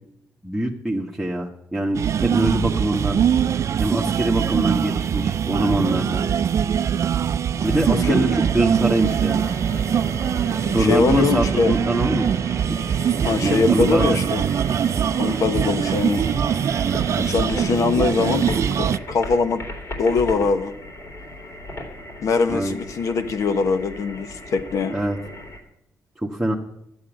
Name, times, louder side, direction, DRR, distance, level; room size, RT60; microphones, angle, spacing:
voice 1, 0.4-3.2 3.8-6.2 7.6-9.4 10.7-12.3 13.4-14.2 22.5-22.8 24.9-25.2 26.2-26.5, right 1 dB, 5° right, -3 dB, 1.4 m, -23 dB
sound 1, 1.9-19.0, right 8 dB, 60° right, 0.4 m, -22 dB
sound 2, 7.6-25.6, left 1 dB, 55° left, 3.4 m, -36 dB
voice 2, 7.9-8.3 10.8-11.8 13.2-14.4 15.2-16.2 17.2-19.6 20.0-20.7 22.2-25.0, left 4 dB, 70° left, 8 dB, 1.3 m, -22 dB
12.5 x 7.9 x 8.8 m, 0.76 s
cardioid pair, 90°, 6 cm